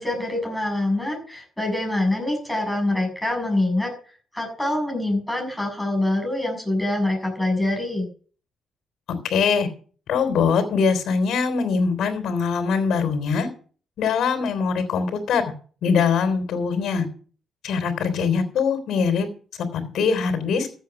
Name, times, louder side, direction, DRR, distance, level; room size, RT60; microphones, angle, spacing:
voice 1, 0.0-3.9 4.3-8.1, left 1 dB, 5° left, 0 dB, 6.8 m, -25 dB
voice 2, 9.3-9.7 10.1-13.5 14.0-15.4 15.8-17.1 17.6-19.3 19.7-20.7, left 5 dB, 70° left, 6 dB, 3.3 m, -22 dB
14.5 x 8.1 x 5.9 m, 0.43 s
cardioid pair, 90°, 0 cm